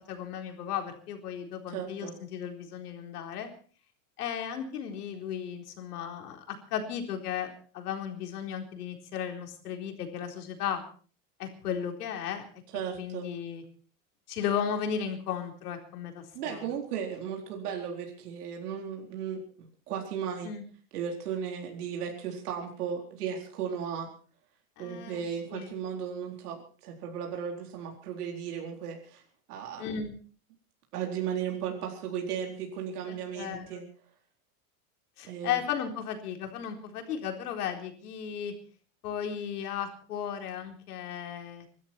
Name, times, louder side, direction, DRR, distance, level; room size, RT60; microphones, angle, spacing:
voice 1, 0.1-3.5 4.2-10.8 11.4-12.4 13.0-13.6 14.3-16.2 16.5-16.7 20.4-20.6 24.8-25.2 25.5-25.7 29.8-30.1 33.1-33.7 35.2-38.5 39.0-41.7, left 8 dB, 90° left, 4 dB, 4.2 m, -35 dB
voice 2, 1.7-2.1 12.7-13.3 16.3-20.5 20.9-24.1 24.8-29.2 29.5-29.9 30.9-33.8 35.2-35.6, right 8 dB, 80° right, 1 dB, 4.3 m, -35 dB
24.5 x 13.0 x 4.5 m, 0.42 s
supercardioid pair, 155°, 45 cm